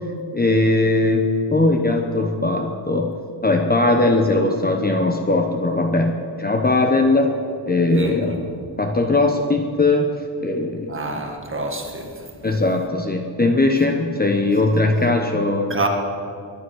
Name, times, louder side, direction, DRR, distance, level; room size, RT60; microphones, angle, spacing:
voice 1, 0.3-3.1 3.4-7.3 7.7-8.4 8.8-10.1 10.4-11.2 12.4-15.7, left 2 dB, 20° left, 3 dB, 1.0 m, -19 dB
voice 2, 7.9-8.4 10.9-12.2 15.7-15.9, right 2 dB, 25° right, 3 dB, 1.7 m, -27 dB
22.0 x 10.5 x 6.3 m, 2.4 s
wide cardioid pair, 160°, 47 cm